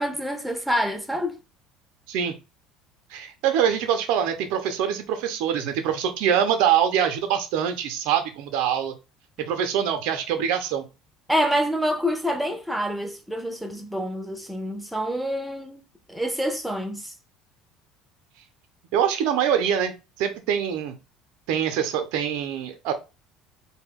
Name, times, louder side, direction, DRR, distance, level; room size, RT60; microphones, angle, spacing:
voice 1, 0.0-1.4 11.3-15.8 16.1-17.0, equal, ahead, 0.6 m, -27 dB
voice 2, 3.1-8.9 9.4-10.8 18.9-21.0 21.5-22.9, right 9 dB, 70° right, 0.5 m, -24 dB
2.2 x 2.1 x 3.6 m
hypercardioid pair, 70°, 0 cm